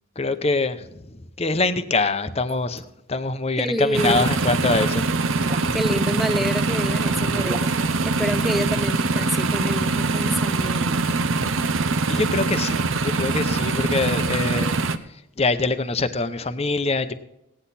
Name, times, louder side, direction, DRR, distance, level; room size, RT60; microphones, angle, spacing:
voice 1, 0.2-5.1 12.1-14.7 15.4-17.1, left 3 dB, 30° left, 11 dB, 0.8 m, -24 dB
sound 1, 2.5-2.8 3.9-4.4 5.4-5.8 6.6-6.9 7.2-7.7, right 1 dB, 30° right, 1.2 m, -36 dB
voice 2, 3.5-4.3 5.7-7.8 8.0-11.2, equal, ahead, 11 dB, 0.5 m, -28 dB
sound 2, 3.9-15.0, right 3 dB, 70° right, 0.7 m, -23 dB
17.0 x 10.0 x 4.2 m, 0.87 s
head